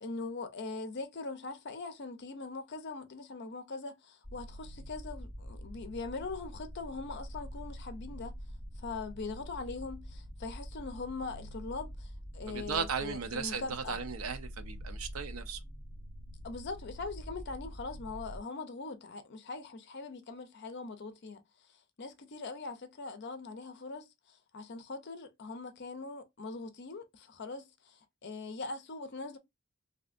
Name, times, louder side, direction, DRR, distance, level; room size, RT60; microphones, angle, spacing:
voice 1, 0.0-8.3 8.8-14.0 16.4-21.4 22.0-29.4, left 3 dB, 50° left, 0.5 m, -41 dB
sound 1, 4.2-18.4, equal, 35° right, 1.8 m, -45 dB
voice 2, 12.5-15.6, right 6 dB, 70° right, 0.5 m, -36 dB
3.3 x 2.7 x 2.5 m
head